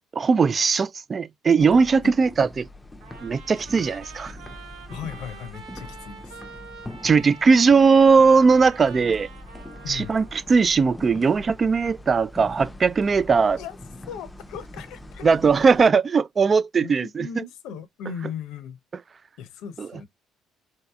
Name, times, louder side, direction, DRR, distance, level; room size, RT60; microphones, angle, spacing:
voice 1, 0.1-2.7 3.2-4.3 7.0-9.3 9.9-13.6 15.2-17.3, right 5 dB, 35° right, 0.3 m, -19 dB
sound 1, 1.6-15.9, left 1 dB, 15° left, 0.5 m, -42 dB
Trumpet, 3.0-10.5, right 6 dB, 85° right, 0.9 m, -45 dB
voice 2, 4.9-6.4 9.8-10.2 13.6-13.8 14.1-15.4 16.8-18.8 19.4-20.1, left 7 dB, 80° left, 0.6 m, -37 dB
3.9 x 2.7 x 2.2 m
supercardioid pair, 80°, 0 cm